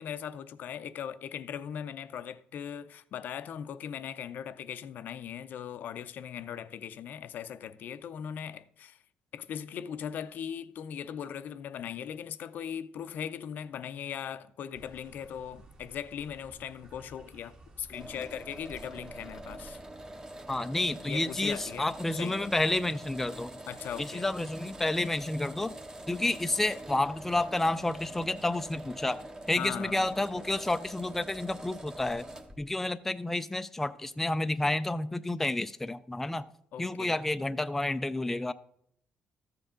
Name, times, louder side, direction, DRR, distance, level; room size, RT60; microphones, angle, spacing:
voice 1, 0.0-9.0 9.3-19.8 21.0-22.5 23.7-24.3 29.6-30.1 36.7-37.2, left 8 dB, 60° left, 0.5 m, -39 dB
sound 1, 14.7-19.8, right 2 dB, 35° right, 1.9 m, -54 dB
sound 2, 17.9-32.6, right 1 dB, 20° right, 1.0 m, -45 dB
voice 2, 20.5-23.6 24.0-25.7 26.1-29.2 29.5-32.3 32.6-36.5 36.8-38.5, left 2 dB, 10° left, 0.4 m, -30 dB
14.0 x 7.1 x 3.8 m
cardioid pair, 120°, 3 cm